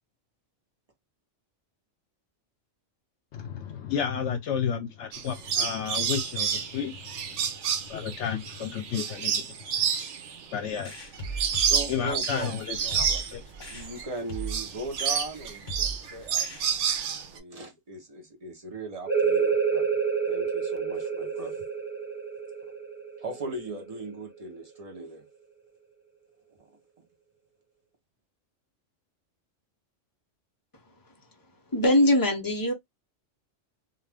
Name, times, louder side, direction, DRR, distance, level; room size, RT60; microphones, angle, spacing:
voice 1, 3.3-7.1 7.9-9.6 10.5-10.9 11.9-13.4, left 8 dB, 70° left, 0.8 m, -32 dB
sound 1, 5.1-14.1 14.4-17.4, right 7 dB, 75° right, 0.9 m, -30 dB
sound 2, 10.9-17.0, right 3 dB, 45° left, 0.9 m, -39 dB
voice 2, 11.6-16.5 17.3-19.9 20.3-21.6 23.2-25.2, right 2 dB, 35° right, 0.8 m, -39 dB
sound 3, 19.1-24.4, right 6 dB, 10° right, 1.1 m, -28 dB
voice 3, 31.7-32.7, left 1 dB, 25° left, 0.5 m, -21 dB
2.4 x 2.3 x 3.3 m
omnidirectional pair, 1.3 m